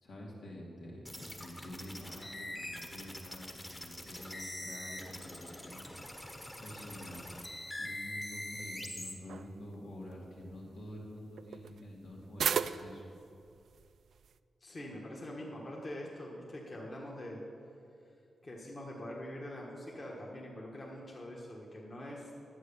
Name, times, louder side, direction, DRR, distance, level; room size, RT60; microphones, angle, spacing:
voice 1, 0.0-3.4 3.7-7.3 7.8-13.1, left 1 dB, 85° left, -3 dB, 2.7 m, -48 dB
sound 1, 1.0-9.1, left 1 dB, 15° left, 1.1 m, -44 dB
sound 2, 1.9-14.4, right 7 dB, 75° right, 0.3 m, -43 dB
voice 2, 14.6-17.4 18.4-22.3, left 1 dB, 35° left, -3 dB, 1.5 m, -44 dB
11.0 x 8.3 x 6.9 m, 2.6 s
wide cardioid pair, 140°, 0 cm